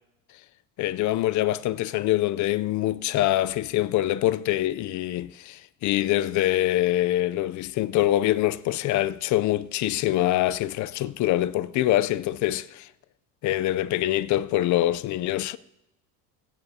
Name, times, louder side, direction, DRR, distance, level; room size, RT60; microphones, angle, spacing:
voice 1, 0.8-12.9 13.4-15.6, left 14 dB, 50° left, 0.5 m, -24 dB
22.5 x 9.4 x 2.8 m
supercardioid pair, 110°, 39 cm